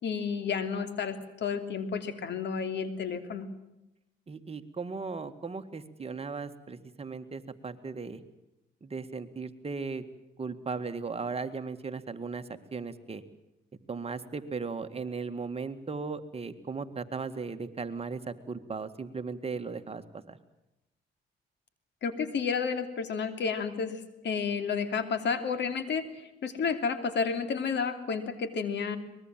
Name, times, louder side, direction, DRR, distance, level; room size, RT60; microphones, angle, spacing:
voice 1, 0.0-3.5 22.0-29.0, left 5 dB, 60° left, 10 dB, 2.9 m, -31 dB
voice 2, 4.3-8.2 8.8-10.0 10.4-13.2 13.9-20.4, right 4 dB, 30° right, 8 dB, 1.9 m, -37 dB
23.5 x 21.0 x 7.5 m, 0.92 s
cardioid pair, 90°, 20 cm